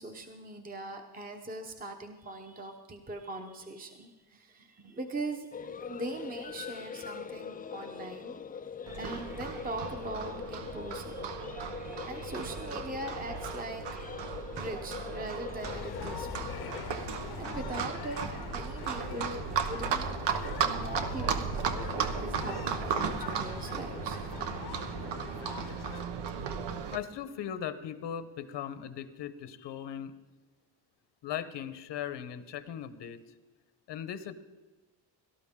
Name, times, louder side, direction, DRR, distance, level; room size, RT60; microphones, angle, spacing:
voice 1, 0.0-5.5 5.8-8.3 9.0-11.4 11.8-14.3 14.6-16.5 17.4-20.1 20.6-24.2, right 2 dB, 20° right, 4 dB, 0.9 m, -41 dB
sound 1, 5.5-16.8, left 7 dB, 25° left, 0.3 m, -43 dB
Livestock farm animals working animals, 8.9-27.0, right 6 dB, 80° right, 1.2 m, -35 dB
sound 2, 15.6-26.0, left 9 dB, 65° left, 0.8 m, -43 dB
voice 2, 26.9-30.1 31.2-33.2 33.9-34.3, left 9 dB, 80° left, 12 dB, 1.0 m, -38 dB
17.5 x 13.0 x 3.7 m, 1.2 s
cardioid pair, 130°, 42 cm